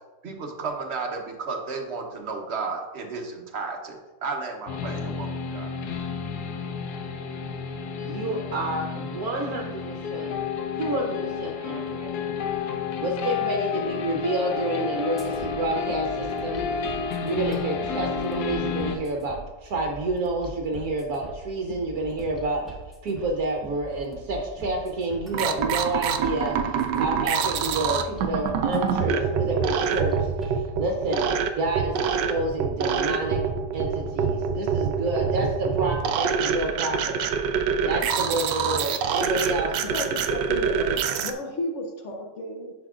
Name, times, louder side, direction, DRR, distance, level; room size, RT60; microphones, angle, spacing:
voice 1, 0.2-5.7, right 4 dB, 45° right, 2 dB, 1.0 m, -33 dB
sound 1, 4.7-19.0, left 6 dB, 75° left, 1.2 m, -31 dB
voice 2, 8.0-10.3 10.8-12.1 13.0-16.9 17.2-22.7 23.0-31.3 31.5-33.4 33.7-37.2 37.8-39.8, right 2 dB, 65° right, 1 dB, 1.3 m, -29 dB
sound 2, 15.2-30.6, right 1 dB, ahead, 1.5 m, -42 dB
sound 3, 25.3-41.3, right 6 dB, 85° right, 1.2 m, -26 dB
voice 3, 39.8-42.7, left 1 dB, 55° left, 1 dB, 1.0 m, -33 dB
10.0 x 5.9 x 2.4 m, 1.2 s
omnidirectional pair, 1.8 m